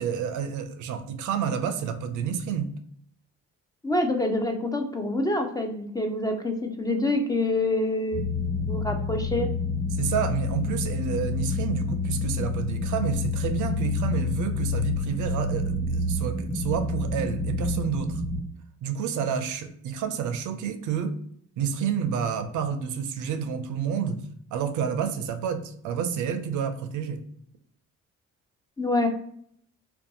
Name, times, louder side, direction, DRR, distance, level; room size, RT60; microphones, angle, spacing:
voice 1, 0.0-2.8 9.9-18.2 18.8-21.2 21.6-27.2, right 7 dB, 80° right, 0.4 m, -29 dB
voice 2, 3.8-8.3 8.7-9.5 28.8-29.1, left 2 dB, 15° left, 0.3 m, -26 dB
sound 1, 8.1-18.4, left 3 dB, 65° left, 1.3 m, -28 dB
2.5 x 2.2 x 2.6 m
cardioid pair, 90°, 30 cm